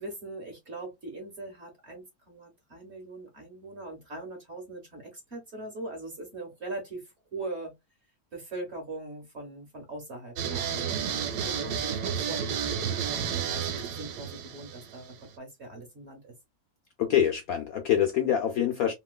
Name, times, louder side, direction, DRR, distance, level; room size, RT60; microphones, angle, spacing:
voice 1, 0.0-7.7 8.3-16.3, right 2 dB, 45° right, 1.0 m, -41 dB
sound 1, 10.4-15.3, right 8 dB, 70° right, 1.1 m, -31 dB
voice 2, 17.0-18.9, left 10 dB, 70° left, 0.8 m, -25 dB
3.0 x 2.9 x 2.3 m
omnidirectional pair, 2.0 m